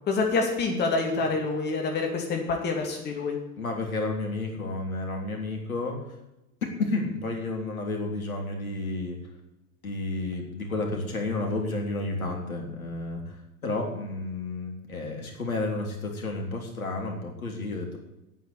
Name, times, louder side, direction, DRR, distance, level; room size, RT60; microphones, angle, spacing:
voice 1, 0.1-3.4, left 3 dB, 20° left, 1 dB, 2.5 m, -27 dB
voice 2, 3.6-6.0 6.6-9.2 9.8-13.4 13.6-18.0, left 2 dB, 70° left, 2 dB, 3.2 m, -31 dB
9.3 x 9.2 x 8.7 m, 0.93 s
figure-of-eight pair, 95°, 44 cm